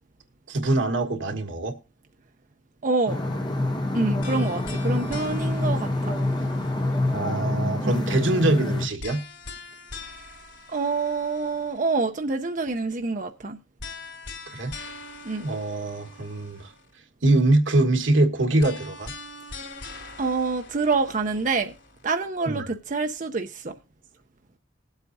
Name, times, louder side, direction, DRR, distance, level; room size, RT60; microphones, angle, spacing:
voice 1, 0.5-1.8 7.1-9.2 14.5-14.9 15.4-16.7 17.2-19.1 22.5-22.7, right 2 dB, 80° right, 1.6 m, -23 dB
voice 2, 2.8-3.2 3.9-6.1 7.8-8.1 10.7-13.6 15.2-15.4 20.2-21.7 22.0-23.7, right 3 dB, 40° right, 0.7 m, -26 dB
sound 1, 3.1-8.9, left 2 dB, 25° left, 1.6 m, -26 dB
sound 2, 4.2-7.4 9.0-12.0 13.8-17.0 18.6-22.0, left 3 dB, 85° left, 4.1 m, -42 dB
20.0 x 8.1 x 2.7 m
head